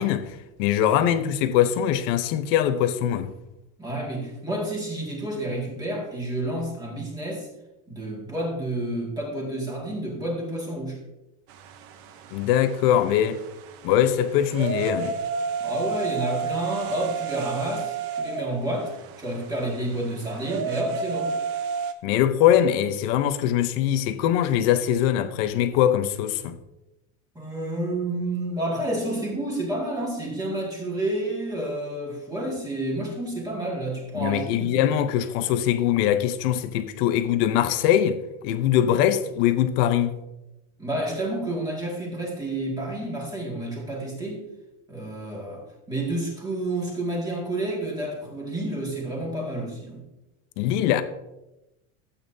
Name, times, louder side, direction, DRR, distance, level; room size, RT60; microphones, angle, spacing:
voice 1, 0.0-3.3 12.3-13.4 13.8-15.2 22.0-26.6 34.1-40.2 50.6-51.0, left 10 dB, 50° left, 0.8 m, -22 dB
voice 2, 3.8-7.5 7.9-11.0 15.6-18.9 19.2-21.3 27.3-34.9 40.8-44.4 44.9-50.0, right 1 dB, 10° right, 2.0 m, -30 dB
sound 1, 11.5-21.9, right 6 dB, 40° right, 0.7 m, -32 dB
12.5 x 8.4 x 2.7 m
cardioid pair, 180°, 36 cm